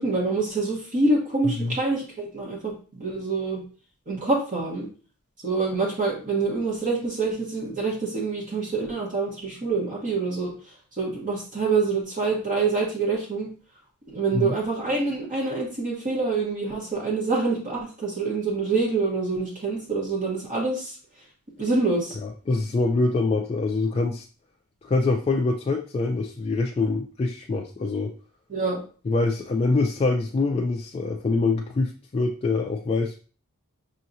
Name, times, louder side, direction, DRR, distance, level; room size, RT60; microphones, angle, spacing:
voice 1, 0.0-3.6 4.1-4.9 5.4-10.5 11.0-13.5 14.1-20.9 21.6-22.2 28.5-28.8, right 3 dB, 35° right, -4 dB, 1.0 m, -26 dB
voice 2, 1.4-1.8 14.3-14.5 22.2-24.2 24.8-28.1 29.1-33.2, left 3 dB, 25° left, 1 dB, 0.3 m, -25 dB
5.5 x 2.9 x 2.5 m, 0.38 s
head